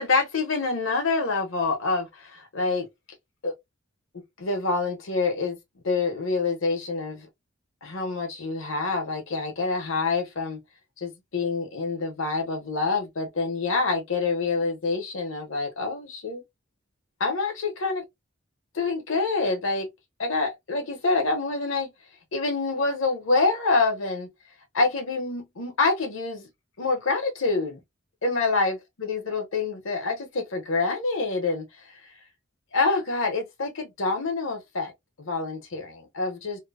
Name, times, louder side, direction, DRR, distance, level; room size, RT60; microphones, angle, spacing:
voice 1, 0.0-2.9 3.4-3.5 4.4-5.6 5.8-7.3 7.8-10.6 11.0-16.4 17.2-18.0 18.7-19.9 20.2-21.9 22.3-24.3 24.7-26.5 26.8-27.8 28.2-32.0 32.7-34.9 35.2-36.6, left 3 dB, 75° left, 0.9 m, -26 dB
2.8 x 2.0 x 2.4 m
head